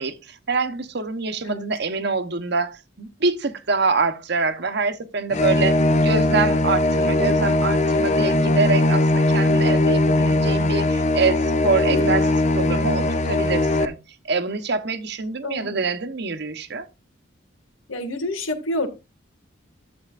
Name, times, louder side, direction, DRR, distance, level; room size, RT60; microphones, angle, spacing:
voice 1, 0.0-12.2 12.5-14.0 14.2-16.9, right 4 dB, 55° right, 0.9 m, -25 dB
sound 1, 5.3-13.8, left 2 dB, 35° left, 0.6 m, -20 dB
voice 2, 11.9-12.2 15.4-15.8 17.9-18.9, left 1 dB, 85° left, 1.9 m, -28 dB
12.0 x 7.9 x 2.5 m
head